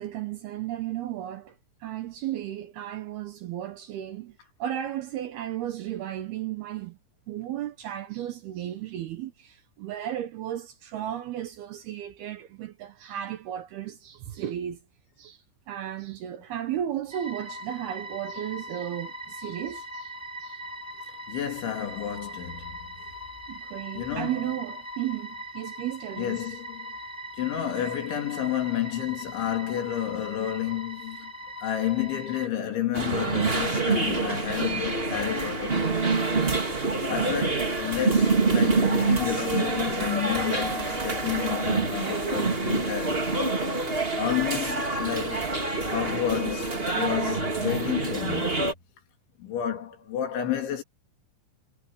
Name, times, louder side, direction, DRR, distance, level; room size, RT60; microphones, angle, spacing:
voice 1, 0.0-1.6 1.8-7.0 7.3-14.8 15.2-15.4 15.7-20.1 20.4-20.6 23.5-26.4, right 12 dB, 70° right, 2.6 m, -34 dB
sound 1, 17.1-32.5, equal, 5° left, 2.8 m, -40 dB
voice 2, 21.3-22.8 24.0-24.4 26.2-26.9 27.4-31.3 31.6-36.0 37.1-43.2 44.2-45.5 45.9-48.6 49.4-50.8, left 10 dB, 75° left, 5.3 m, -30 dB
sound 2, 32.9-48.7, right 3 dB, 50° right, 0.7 m, -26 dB
omnidirectional pair, 5.5 m